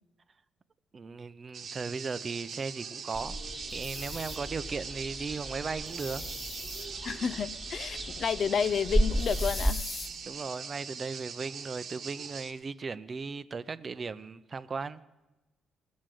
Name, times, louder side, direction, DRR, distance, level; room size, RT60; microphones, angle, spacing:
voice 1, 0.9-3.4 3.7-6.2 10.2-15.0, right 4 dB, 35° right, 14 dB, 0.5 m, -37 dB
sound 1, 1.5-12.5, right 6 dB, 60° right, 1.0 m, -42 dB
sound 2, 3.1-9.7, equal, 5° right, 1.4 m, -34 dB
sound 3, 3.7-4.4 5.9-6.9 9.2-10.1, left 4 dB, 40° left, 1.0 m, -42 dB
voice 2, 7.0-9.8, left 7 dB, 55° left, 16 dB, 0.4 m, -30 dB
17.5 x 6.3 x 7.7 m, 1.1 s
cardioid pair, 90°, 0 cm